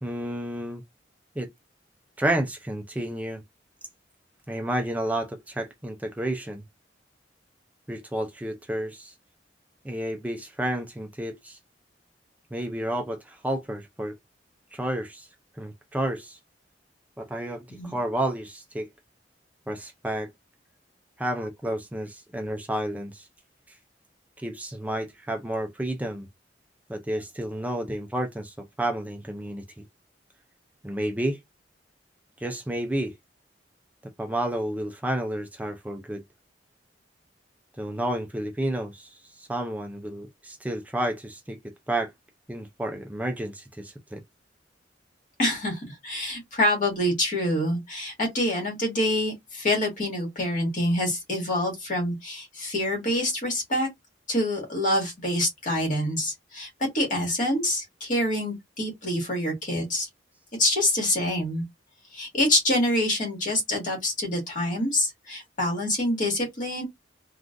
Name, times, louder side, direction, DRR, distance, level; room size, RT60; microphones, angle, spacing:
voice 1, 0.0-0.8 1.4-1.5 2.2-3.4 4.5-6.6 7.9-9.1 9.8-11.6 12.5-14.1 14.7-15.3 15.6-16.4 17.2-18.9 19.7-20.3 21.2-23.3 24.4-26.3 26.9-29.6 30.8-31.4 32.4-33.1 34.2-36.2 37.8-41.6 41.9-42.1 42.5-44.2, right 1 dB, 10° right, 0.4 m, -31 dB
voice 2, 45.4-53.9 54.3-56.7 56.9-60.1 60.6-61.6 62.1-66.8, left 1 dB, 45° left, 1.8 m, -26 dB
3.6 x 2.4 x 2.5 m
head